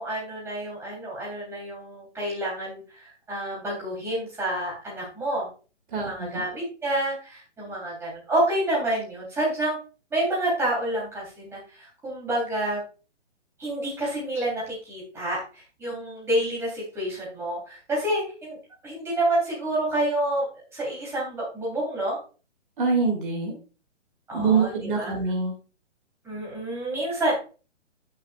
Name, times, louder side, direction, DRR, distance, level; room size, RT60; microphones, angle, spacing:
voice 1, 0.0-5.5 5.9-9.8 10.1-12.8 13.6-15.4 15.8-18.6 18.8-22.2 24.3-25.1 26.2-27.4, right 1 dB, 5° right, -5 dB, 3.5 m, -28 dB
voice 2, 5.9-6.4 22.8-23.5 24.3-25.5, right 5 dB, 45° right, 1 dB, 2.4 m, -24 dB
14.0 x 6.7 x 2.4 m, 0.35 s
hypercardioid pair, 160°, 36 cm